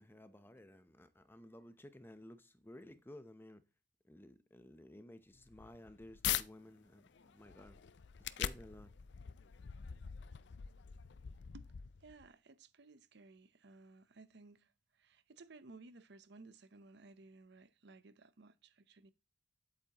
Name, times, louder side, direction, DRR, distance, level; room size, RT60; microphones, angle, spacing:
voice 1, 0.0-3.6 4.1-7.8 8.4-8.9, left 1 dB, 10° left, 0.7 m, -55 dB
sound 1, 5.3-6.5 7.0-12.3, left 10 dB, 65° left, 0.5 m, -43 dB
voice 2, 12.0-19.1, right 3 dB, 60° right, 0.8 m, -58 dB
9.6 x 8.4 x 3.0 m
head